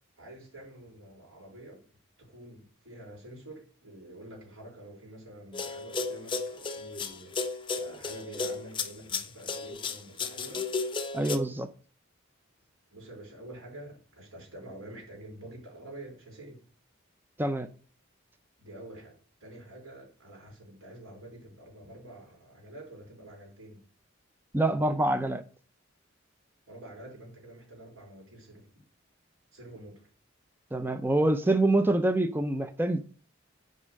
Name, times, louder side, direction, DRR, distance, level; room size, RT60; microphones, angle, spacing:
voice 1, 0.2-1.8 2.2-10.7 12.9-16.6 18.6-23.8 26.7-28.7 29.5-30.1, right 1 dB, 80° right, 4.8 m, -47 dB
sound 1, 5.5-11.4, left 4 dB, 25° left, 0.8 m, -33 dB
voice 2, 11.1-11.7 17.4-17.7 24.5-25.4 30.7-33.0, right 2 dB, 10° right, 0.5 m, -26 dB
8.6 x 5.5 x 6.4 m
head